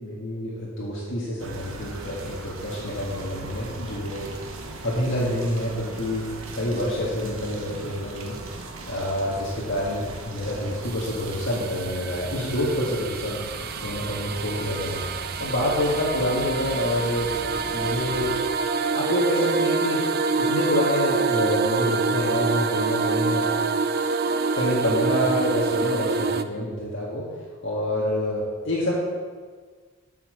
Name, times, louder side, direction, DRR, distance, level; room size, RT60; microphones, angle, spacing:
voice 1, 0.0-4.3 4.8-6.3 6.5-8.4 8.9-15.0 15.4-17.3 17.7-18.3 18.9-20.0 20.3-23.6 24.5-27.3 27.6-29.0, left 1 dB, 60° left, -6 dB, 1.7 m, -27 dB
sound 1, 1.4-18.4, right 2 dB, 70° right, 1.1 m, -38 dB
sound 2, 10.8-26.4, right 4 dB, 45° right, 0.4 m, -26 dB
8.5 x 5.8 x 6.5 m, 1.5 s
head